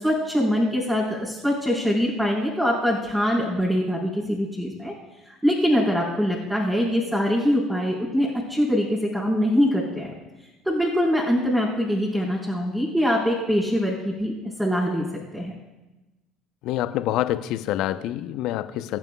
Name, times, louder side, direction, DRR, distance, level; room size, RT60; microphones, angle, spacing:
voice 1, 0.0-4.9 5.2-8.9 9.1-10.1 10.6-14.3 14.6-15.0 15.3-15.5, equal, 5° right, -5 dB, 4.4 m, -23 dB
voice 2, 16.6-19.0, left 13 dB, 60° left, 11 dB, 0.8 m, -26 dB
24.0 x 10.5 x 2.4 m, 1.0 s
hypercardioid pair, 70°, 0 cm